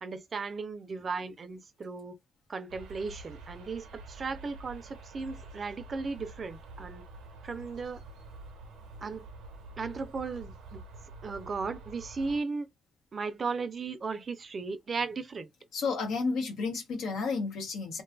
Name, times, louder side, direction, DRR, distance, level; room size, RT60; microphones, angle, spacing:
voice 1, 0.0-2.2 2.5-7.0 7.4-8.0 9.0-9.3 9.8-10.8 11.2-12.7 13.1-15.5, right 4 dB, 40° right, 0.4 m, -36 dB
sound 1, 2.7-12.4, right 2 dB, 90° right, 0.6 m, -48 dB
voice 2, 15.7-18.0, left 4 dB, 75° left, 0.9 m, -31 dB
2.6 x 2.3 x 2.3 m
cardioid pair, 90°, 0 cm